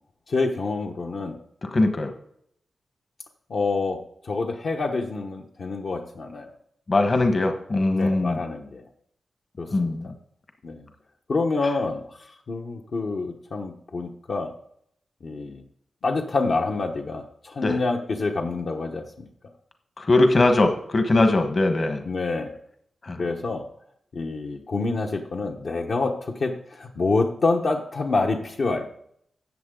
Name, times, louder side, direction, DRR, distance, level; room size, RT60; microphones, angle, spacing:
voice 1, 0.3-1.4 3.5-6.5 7.9-8.8 9.6-10.1 10.6-10.9 11.3-12.0 12.5-14.5 15.2-15.6 16.0-19.3 22.0-22.5 23.2-23.7 24.1-28.9, left 3 dB, 60° left, 1 dB, 1.1 m, -27 dB
voice 2, 1.7-2.1 6.9-8.4 9.7-10.1 17.6-17.8 20.0-22.0 23.0-23.2, left 2 dB, 40° left, 6 dB, 1.2 m, -21 dB
13.5 x 8.0 x 3.8 m, 0.69 s
wide cardioid pair, 125°, 0 cm